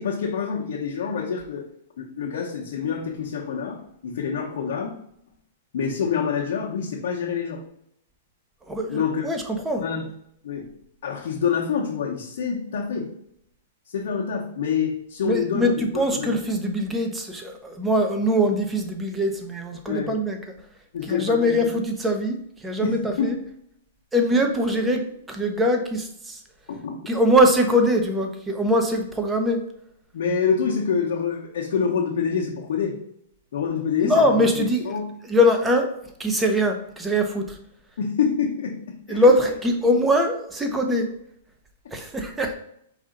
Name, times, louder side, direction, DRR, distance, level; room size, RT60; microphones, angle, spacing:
voice 1, 0.0-1.7 2.0-4.9 5.7-7.6 8.9-9.3 9.7-10.1 10.4-10.7 11.0-13.1 13.9-15.9 16.2-16.3 19.9-20.2 20.9-21.7 22.8-23.4 26.7-27.0 30.1-33.0 33.5-35.1 38.0-39.2 41.8-41.9, left 6 dB, 70° left, -4 dB, 0.9 m, -26 dB
voice 2, 8.7-9.8 15.2-20.4 21.0-23.4 24.1-26.4 27.1-29.6 34.0-35.9 36.2-37.6 39.1-41.1 41.9-42.5, equal, 10° right, 4 dB, 0.7 m, -22 dB
4.9 x 2.7 x 3.8 m, 0.72 s
hypercardioid pair, 130°, 0 cm